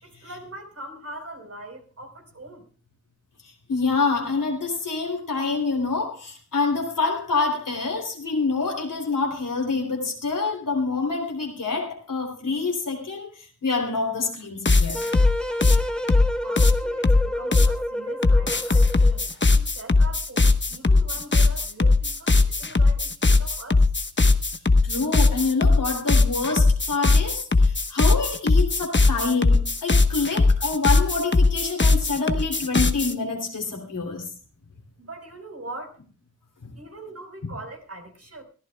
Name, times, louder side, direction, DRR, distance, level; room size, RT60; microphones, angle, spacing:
voice 1, 0.0-2.7 16.4-23.8 35.0-36.0 36.8-38.4, right 2 dB, 50° right, 3 dB, 4.8 m, -41 dB
voice 2, 3.7-15.0 24.8-34.3 36.6-36.7, left 4 dB, 90° left, 1 dB, 3.2 m, -26 dB
sound 1, 14.7-17.8 18.2-33.1, left 3 dB, 35° left, 1.2 m, -19 dB
sound 2, 14.9-19.3, equal, 5° left, 1.6 m, -30 dB
22.5 x 14.0 x 2.3 m, 0.37 s
cardioid pair, 40°, 31 cm